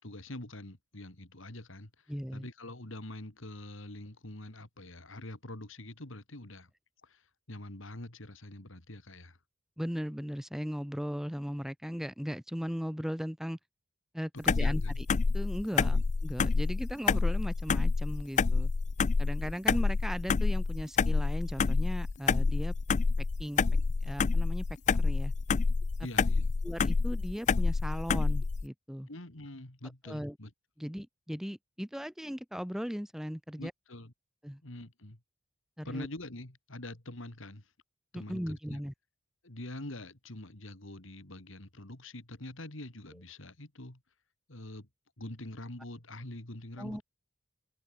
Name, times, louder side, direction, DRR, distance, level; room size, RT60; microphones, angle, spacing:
voice 1, 0.0-2.1 2.3-6.7 7.0-7.2 7.5-9.4 14.3-15.0 15.7-16.0 16.6-16.7 26.0-26.5 29.1-30.5 33.6-34.1 34.6-35.2 35.8-37.6 38.1-38.8 39.4-44.0 44.5-44.9 45.2-47.0, left 1 dB, 70° left, 3.1 m, -44 dB
voice 2, 2.1-2.5 9.8-13.6 14.1-14.8 15.3-18.7 19.2-22.7 23.4-23.6 24.0-24.6 24.9-25.3 26.6-29.1 30.1-30.3 30.8-33.7 34.4-34.6 35.8-36.1 38.1-38.9 46.8-47.0, equal, ahead, 1.2 m, -37 dB
sound 1, 14.5-28.6, left 4 dB, 35° left, 0.4 m, -28 dB
open air
head